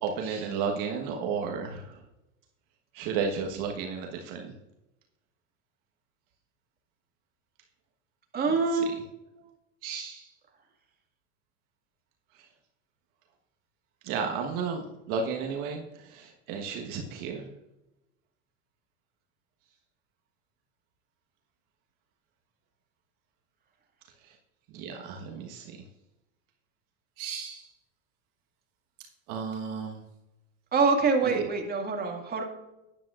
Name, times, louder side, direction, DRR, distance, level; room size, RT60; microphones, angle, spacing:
voice 1, 0.0-2.0 2.9-4.5 8.5-8.9 9.4-9.5 9.8-10.3 12.3-12.5 14.0-17.5 24.2-24.4 24.7-25.8 27.2-27.7 29.3-30.0, right 5 dB, 55° right, 2 dB, 1.4 m, -33 dB
voice 2, 8.3-8.9 30.7-32.4, right 4 dB, 25° right, 2 dB, 2.1 m, -25 dB
12.5 x 10.5 x 2.5 m, 0.96 s
supercardioid pair, 110°, 38 cm